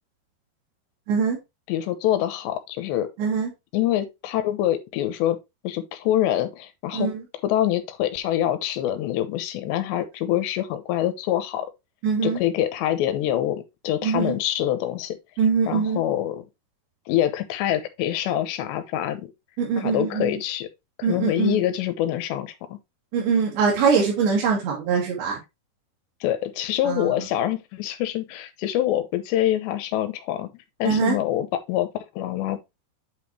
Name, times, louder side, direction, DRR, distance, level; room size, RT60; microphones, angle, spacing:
voice 1, 1.7-3.1 3.7-5.4 5.6-7.1 7.4-11.7 12.2-15.2 15.7-16.4 17.1-19.3 19.8-20.7 21.0-22.8 26.2-31.9 32.2-32.6, left 12 dB, 85° left, 3.1 m, -25 dB
voice 2, 3.2-3.5 6.9-7.2 12.0-12.4 14.0-14.4 15.4-16.0 19.6-20.4 21.0-21.6 23.1-25.4 26.9-27.1 30.9-31.2, right 5 dB, 90° right, 4.4 m, -23 dB
8.3 x 5.4 x 3.1 m
omnidirectional pair, 5.0 m